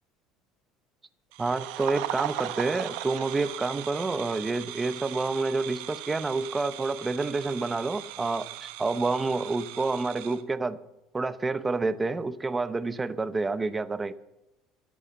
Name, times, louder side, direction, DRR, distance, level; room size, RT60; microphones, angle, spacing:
sound 1, 1.3-10.4, right 14 dB, 80° right, 1.0 m, -38 dB
voice 1, 1.4-10.8 11.1-14.1, right 3 dB, 15° right, 14 dB, 0.7 m, -28 dB
13.5 x 8.6 x 7.2 m, 0.96 s
cardioid pair, 125°, 0 cm